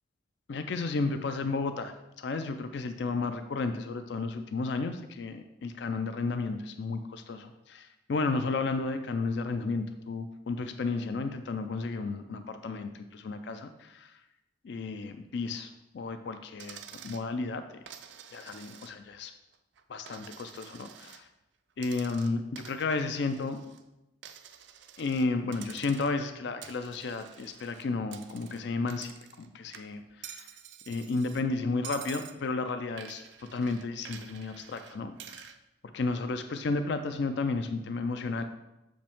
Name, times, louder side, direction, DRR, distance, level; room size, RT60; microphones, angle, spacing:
voice 1, 0.5-14.1 14.6-17.8 18.3-19.3 19.9-21.3 21.8-23.6 25.0-30.5 30.9-35.5 35.9-38.4, left 3 dB, 55° left, 9 dB, 0.4 m, -33 dB
Coin (dropping), 16.6-17.3 17.9-19.2 19.5-21.2 21.8-23.8 24.2-25.3 25.5-26.3 26.6-29.5 29.7-31.4 31.8-32.4 33.0-35.6, right 9 dB, 60° right, 0.4 m, -48 dB
6.9 x 5.0 x 3.6 m, 0.93 s
head